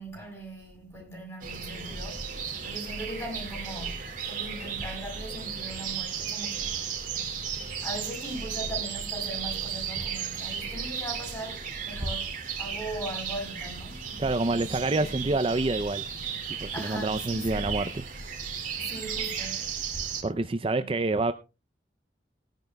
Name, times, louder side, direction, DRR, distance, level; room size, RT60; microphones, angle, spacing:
voice 1, 0.0-6.9 7.8-12.3 12.6-15.5 16.7-17.7 18.7-19.7 20.8-20.9, right 1 dB, 15° left, 6.2 m, -40 dB
sound 1, 1.4-20.2, right 6 dB, 45° right, 2.4 m, -34 dB
voice 2, 14.2-16.0 16.6-18.0 20.2-21.3, right 2 dB, 30° right, 0.4 m, -27 dB
19.0 x 10.5 x 2.2 m
head